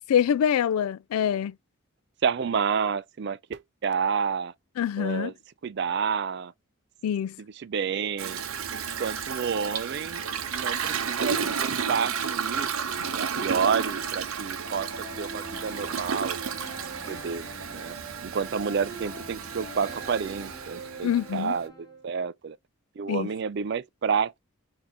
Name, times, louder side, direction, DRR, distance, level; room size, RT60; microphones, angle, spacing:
voice 1, 0.1-1.5 4.8-5.3 7.0-7.4 21.0-21.5 23.1-23.3, left 9 dB, 90° left, 0.3 m, -25 dB
voice 2, 2.2-4.5 5.0-5.3 5.6-6.5 7.6-8.4 8.7-10.2 10.5-16.6 16.9-17.4 17.7-17.9 18.2-22.6 23.0-24.4, right 6 dB, 50° right, 0.3 m, -30 dB
Toilet flush, 8.2-21.6, right 6 dB, 75° right, 0.8 m, -32 dB
sound 1, 14.6-22.1, right 1 dB, 15° left, 1.4 m, -44 dB
4.2 x 2.8 x 2.8 m
head